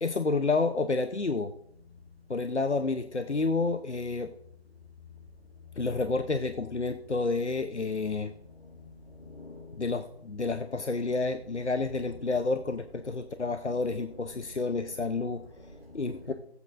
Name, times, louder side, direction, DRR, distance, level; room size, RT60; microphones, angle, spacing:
voice 1, 0.0-1.5 2.3-4.3 5.8-8.3 9.8-15.4 15.9-16.3, left 3 dB, 90° left, 0.8 m, -29 dB
voice 2, 8.4-9.9 14.3-14.6 15.6-16.3, left 2 dB, 60° left, 2.2 m, -48 dB
21.0 x 8.3 x 2.5 m
figure-of-eight pair, 180°, 33 cm